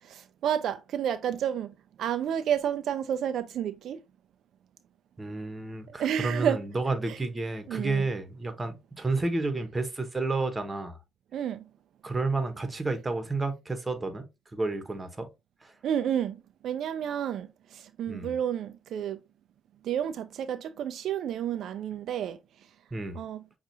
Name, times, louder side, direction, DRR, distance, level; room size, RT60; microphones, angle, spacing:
voice 1, 0.0-4.0 5.9-6.6 7.1-7.2 7.7-8.1 11.3-11.6 15.8-19.2 19.8-22.7 23.1-23.4, right 9 dB, 75° right, 0.3 m, -31 dB
voice 2, 5.2-11.0 12.0-14.2 14.5-15.3 15.6-15.7 18.1-18.4 22.9-23.2, right 3 dB, 20° right, 1.0 m, -31 dB
6.0 x 2.4 x 2.7 m
cardioid pair, 90°, 0 cm